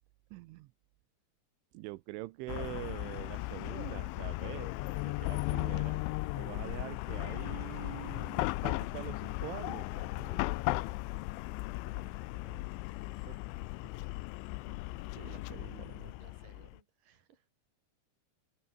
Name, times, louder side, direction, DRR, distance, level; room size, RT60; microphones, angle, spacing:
voice 1, 0.3-0.7 1.7-6.1 6.3-10.5 11.8-12.6 13.2-13.4 14.7-14.8 15.2-16.1, right 20 dB, 85° right, 3.2 m, -45 dB
Chatter / Car passing by / Traffic noise roadway noise, 2.5-16.8, left 20 dB, 85° left, 3.1 m, -36 dB
voice 2, 10.4-11.1 16.2-17.5, right 9 dB, 50° right, 4.1 m, -64 dB
open air
omnidirectional pair, 5.5 m